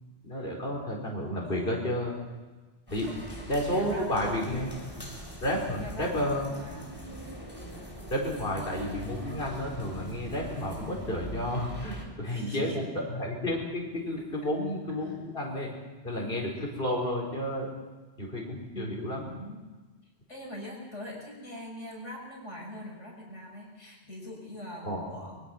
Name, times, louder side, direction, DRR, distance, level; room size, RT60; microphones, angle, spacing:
voice 1, 0.2-2.2 2.9-3.1 3.5-4.7 5.4-6.5 8.1-15.7 16.0-17.7 18.2-19.3 24.8-25.1, left 1 dB, 50° left, -1 dB, 5.0 m, -31 dB
voice 2, 1.4-1.9 3.0-3.2 3.5-4.3 5.8-6.9 12.2-12.8 15.0-15.1 18.7-19.6 20.0-25.4, left 1 dB, 90° left, -1 dB, 6.3 m, -43 dB
sound 1, 2.9-12.1, equal, 20° left, 4.0 m, -43 dB
25.0 x 23.0 x 6.0 m, 1.3 s
omnidirectional pair, 1.2 m